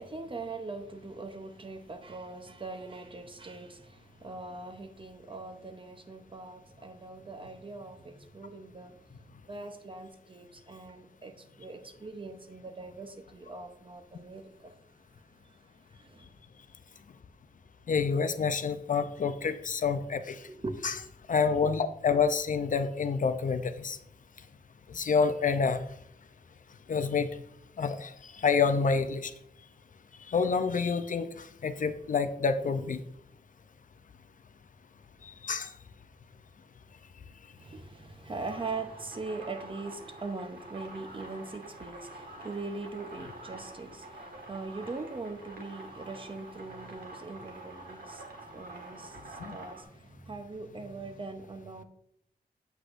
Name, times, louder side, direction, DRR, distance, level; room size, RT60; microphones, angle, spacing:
voice 1, 0.0-14.7 16.0-16.3 20.5-21.0 37.6-51.8, right 3 dB, 35° right, 0.7 m, -41 dB
voice 2, 17.9-20.4 20.8-20.9 21.3-24.0 24.9-25.8 26.9-27.3 27.8-29.3 30.3-33.0 35.2-35.7 49.4-49.6, left 5 dB, 55° left, 0.5 m, -28 dB
sound 1, 38.4-49.8, right 2 dB, 70° right, 1.6 m, -47 dB
8.0 x 8.0 x 2.5 m
wide cardioid pair, 160°, 16 cm